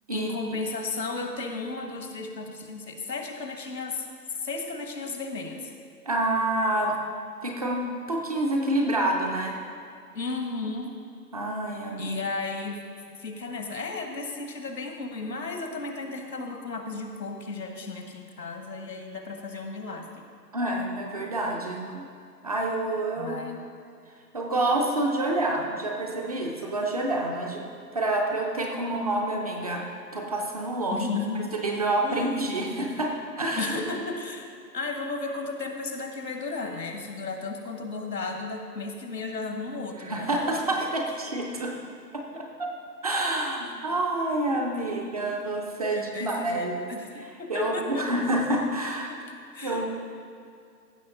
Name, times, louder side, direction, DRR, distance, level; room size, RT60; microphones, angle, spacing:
voice 1, 0.1-4.1 4.4-5.7 10.1-11.0 12.0-12.8 13.2-20.3 23.2-23.6 30.9-31.5 32.0-32.4 33.5-34.5 34.7-40.3 44.5-45.0 45.9-48.1 49.1-49.2 49.5-49.9, left 3 dB, 80° left, 4 dB, 1.6 m, -34 dB
voice 2, 6.1-6.9 7.4-7.8 8.1-9.6 11.3-12.2 20.5-22.1 22.4-23.4 24.3-27.6 27.9-29.8 30.1-31.1 31.5-33.7 40.0-41.7 42.1-42.2 42.6-42.7 43.0-46.7 47.5-49.1 49.6-49.9, right 1 dB, 25° right, 0 dB, 0.5 m, -27 dB
15.0 x 6.2 x 3.8 m, 2.4 s
figure-of-eight pair, 135°, 49 cm